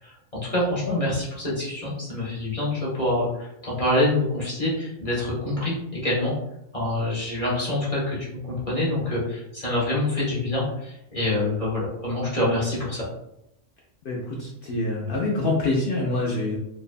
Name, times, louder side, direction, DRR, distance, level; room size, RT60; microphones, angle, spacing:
voice 1, 0.0-6.3 6.7-13.1, left 1 dB, 30° left, -7 dB, 0.8 m, -26 dB
voice 2, 14.0-16.6, left 2 dB, 70° left, -3 dB, 0.5 m, -26 dB
2.6 x 2.0 x 2.5 m, 0.83 s
omnidirectional pair, 1.4 m